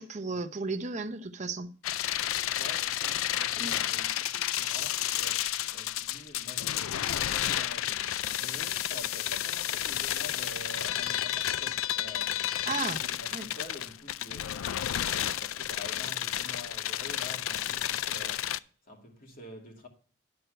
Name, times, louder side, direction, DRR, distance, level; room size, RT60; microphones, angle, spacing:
voice 1, 0.0-1.7 3.6-3.7 12.7-13.0 13.3-13.5, right 3 dB, 35° right, 0.7 m, -34 dB
sound 1, 1.8-18.6, left 12 dB, 85° left, 0.4 m, -31 dB
voice 2, 2.6-19.9, left 1 dB, 45° left, 2.4 m, -47 dB
11.5 x 4.6 x 7.8 m
head